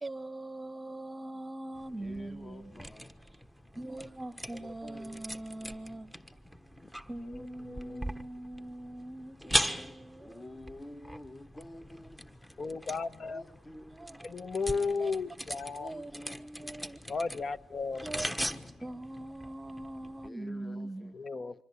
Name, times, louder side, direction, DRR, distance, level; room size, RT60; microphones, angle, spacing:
voice 1, 0.0-2.9 3.7-6.1 7.1-10.4 13.9-14.3 15.0-15.1 15.8-17.0 18.0-21.1, right 1 dB, 15° right, 1.1 m, -42 dB
sound 1, 1.7-20.3, equal, 5° left, 1.3 m, -40 dB
voice 2, 2.0-3.1 4.8-5.2 10.2-12.1 13.2-13.9 15.8-16.4 20.2-20.9, left 1 dB, 20° left, 1.6 m, -48 dB
voice 3, 7.3-8.1 9.5-10.0 12.6-13.4 14.2-15.9 17.1-18.3 21.1-21.6, left 4 dB, 40° left, 1.2 m, -35 dB
26.5 x 25.0 x 8.5 m
cardioid pair, 90°, 0 cm